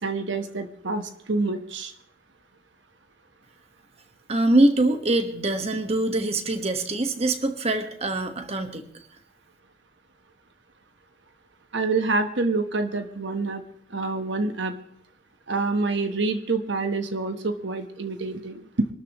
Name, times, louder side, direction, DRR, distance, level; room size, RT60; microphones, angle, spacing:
voice 1, 0.0-1.9 11.7-13.6 13.9-14.7 15.5-18.9, right 3 dB, 70° right, 7 dB, 1.2 m, -27 dB
voice 2, 4.3-8.8, right 2 dB, 35° right, 6 dB, 1.4 m, -23 dB
24.0 x 12.5 x 3.1 m, 0.66 s
head